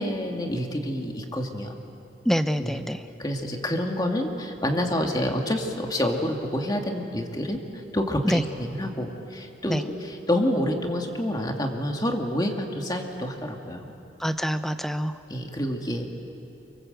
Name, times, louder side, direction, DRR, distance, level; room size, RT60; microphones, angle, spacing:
voice 1, 0.0-1.7 2.6-2.8 3.2-13.9 15.3-16.1, left 1 dB, 20° left, 2 dB, 2.2 m, -28 dB
voice 2, 2.3-3.0 8.2-8.4 9.7-9.8 14.2-15.1, equal, ahead, 9 dB, 0.8 m, -25 dB
28.0 x 25.0 x 8.0 m, 2.9 s
head